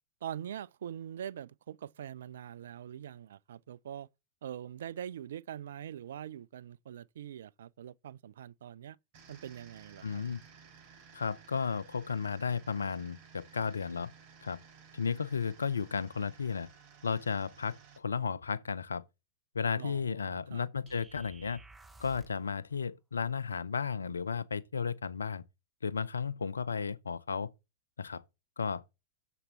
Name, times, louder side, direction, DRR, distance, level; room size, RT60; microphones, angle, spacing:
voice 1, 0.2-4.1 4.4-9.0 9.3-10.2 19.8-20.7, right 10 dB, 65° right, 0.4 m, -43 dB
sound 1, 9.1-18.0, right 6 dB, 45° right, 5.6 m, -57 dB
voice 2, 10.0-10.4 11.1-14.1 14.4-14.6 14.9-16.7 17.0-19.0 19.5-21.6 22.0-25.4 25.8-27.5 28.0-28.2 28.6-28.8, left 5 dB, 75° left, 0.6 m, -34 dB
sound 2, 20.9-22.5, right 3 dB, 10° right, 1.0 m, -54 dB
7.1 x 6.8 x 5.5 m
figure-of-eight pair, 90°, 0 cm